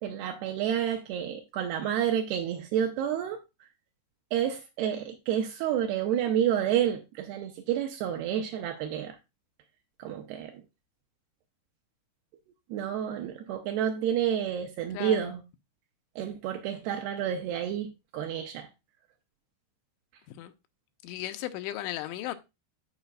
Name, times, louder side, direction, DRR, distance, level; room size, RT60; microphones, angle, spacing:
voice 1, 0.0-3.4 4.3-9.2 10.0-10.6 12.7-15.4 16.2-18.7, right 9 dB, 80° right, 2.4 m, -29 dB
voice 2, 14.9-15.3 20.3-20.5 21.0-22.4, left 14 dB, 90° left, 3.0 m, -36 dB
14.5 x 4.9 x 2.3 m
omnidirectional pair, 5.3 m